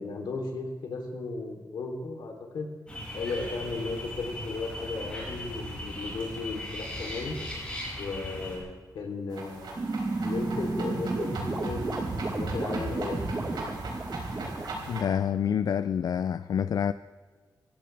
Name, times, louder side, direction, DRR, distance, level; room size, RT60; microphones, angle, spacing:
voice 1, 0.0-2.7 3.1-7.4 8.0-13.2, left 3 dB, 80° left, 3.2 m, -35 dB
sound 1, 2.9-8.6, left 1 dB, 15° left, 6.2 m, -38 dB
sound 2, 7.0-7.4 9.7-14.8, right 3 dB, 30° right, 1.2 m, -32 dB
sound 3, 9.3-15.0, right 2 dB, 90° right, 4.8 m, -40 dB
voice 2, 14.9-16.9, left 8 dB, 60° left, 0.4 m, -27 dB
26.0 x 15.5 x 3.4 m
wide cardioid pair, 175°, 7 cm